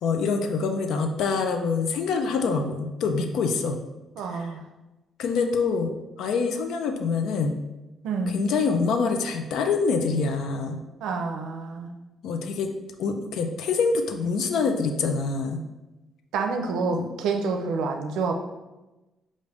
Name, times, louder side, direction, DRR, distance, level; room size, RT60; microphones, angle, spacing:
voice 1, 0.0-3.8 4.3-4.5 5.2-7.6 8.3-10.8 12.2-12.7 13.0-15.6 16.9-17.1, left 4 dB, 80° left, 5 dB, 0.5 m, -25 dB
voice 2, 4.2-4.6 8.0-8.4 11.0-11.9 16.3-18.4, right 4 dB, 90° right, 4 dB, 0.5 m, -28 dB
5.1 x 2.5 x 3.4 m, 1.1 s
cardioid pair, 90°, 0 cm